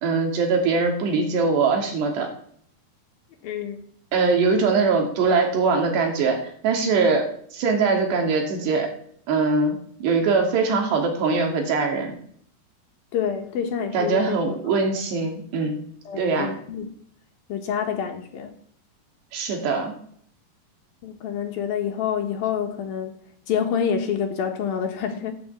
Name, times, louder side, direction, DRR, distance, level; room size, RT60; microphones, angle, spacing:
voice 1, 0.0-2.3 4.1-6.4 6.6-7.3 7.5-8.9 9.3-12.1 13.9-15.8 16.2-16.5 19.3-19.9, right 4 dB, 75° right, 3 dB, 4.9 m, -22 dB
voice 2, 3.4-3.9 13.1-14.4 16.1-16.9 17.5-18.5 21.0-23.1 23.5-25.3, left 8 dB, 65° left, 5 dB, 3.1 m, -27 dB
15.0 x 10.5 x 8.4 m, 0.62 s
omnidirectional pair, 5.0 m